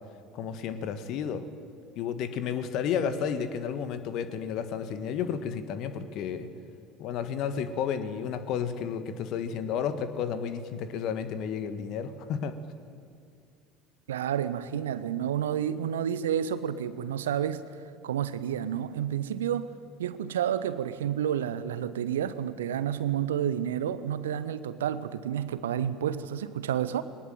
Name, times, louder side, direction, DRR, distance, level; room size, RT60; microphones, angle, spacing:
voice 1, 0.3-1.5 1.9-6.5 7.0-12.6, left 7 dB, 50° left, 11 dB, 1.6 m, -32 dB
voice 2, 14.1-17.6 18.0-19.7 20.0-27.0, right 9 dB, 70° right, 15 dB, 0.9 m, -30 dB
21.0 x 19.0 x 9.2 m, 2.3 s
figure-of-eight pair, 65°, 0 cm